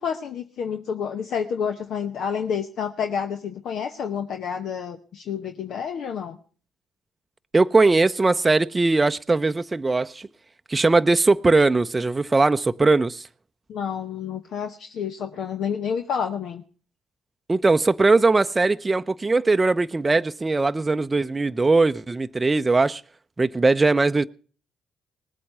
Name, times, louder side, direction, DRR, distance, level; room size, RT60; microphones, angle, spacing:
voice 1, 0.0-6.4 13.7-16.6, left 7 dB, 65° left, 0.9 m, -29 dB
voice 2, 7.5-10.3 10.7-13.3 17.5-23.0 23.4-24.2, right 3 dB, 25° right, 0.6 m, -20 dB
19.0 x 8.5 x 6.7 m
hypercardioid pair, 45°, 0 cm